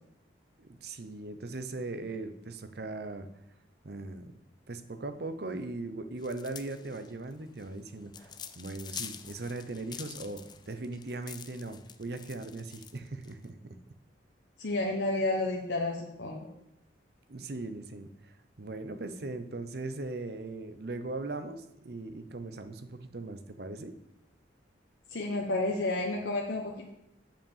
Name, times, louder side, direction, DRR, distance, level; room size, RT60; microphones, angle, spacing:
voice 1, 0.6-3.3 3.8-4.3 4.7-8.3 8.6-13.8 17.3-18.3 18.6-23.9, right 2 dB, 55° right, 10 dB, 0.7 m, -39 dB
sound 1, 6.2-13.4, left 7 dB, 25° left, 0.4 m, -46 dB
voice 2, 14.6-16.5 25.1-26.9, left 2 dB, 75° left, -1 dB, 1.0 m, -31 dB
7.2 x 5.5 x 7.3 m, 0.86 s
head